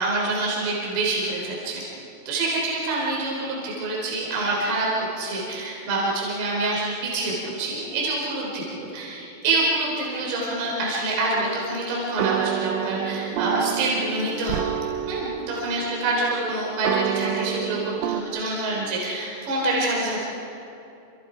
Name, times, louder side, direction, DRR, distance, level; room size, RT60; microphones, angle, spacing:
voice 1, 0.0-1.8 2.3-20.2, right 2 dB, 60° right, -4 dB, 5.7 m, -26 dB
sound 1, 11.3-18.2, right 9 dB, 80° right, 3.3 m, -29 dB
27.5 x 27.0 x 5.0 m, 2.8 s
omnidirectional pair, 5.8 m